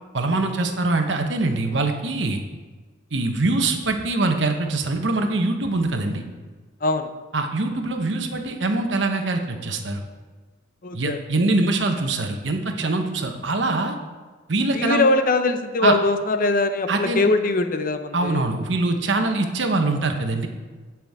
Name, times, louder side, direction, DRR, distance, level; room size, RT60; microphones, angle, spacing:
voice 1, 0.1-2.4 3.1-6.2 7.3-10.0 10.9-13.9 14.5-15.1 15.8-16.0 16.9-17.3 18.1-20.5, right 2 dB, 70° right, 5 dB, 1.1 m, -23 dB
voice 2, 10.8-11.2 14.7-18.5, left 2 dB, 45° left, 8 dB, 0.6 m, -21 dB
17.0 x 6.0 x 3.6 m, 1.4 s
head